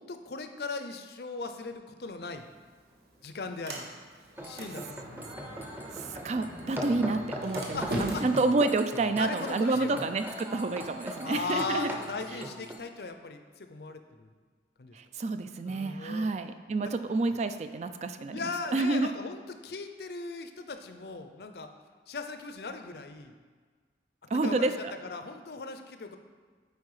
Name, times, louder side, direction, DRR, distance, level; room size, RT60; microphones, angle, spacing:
voice 1, 0.0-2.4 3.2-3.9 4.4-5.6 7.7-8.2 9.2-10.1 11.2-14.3 14.8-15.0 15.6-16.3 16.8-16.9 18.3-21.7 22.1-23.3 24.4-24.7 25.0-26.2, left 3 dB, 65° left, 7 dB, 0.6 m, -38 dB
Sliding door, 2.3-12.3, right 1 dB, 60° right, 1.2 m, -42 dB
sound 1, 4.4-12.8, equal, 10° right, 0.7 m, -40 dB
voice 2, 5.9-11.9 14.9-18.4 18.7-19.1 24.3-24.9, right 3 dB, 40° right, 9 dB, 0.3 m, -29 dB
8.3 x 4.6 x 4.8 m, 1.5 s
head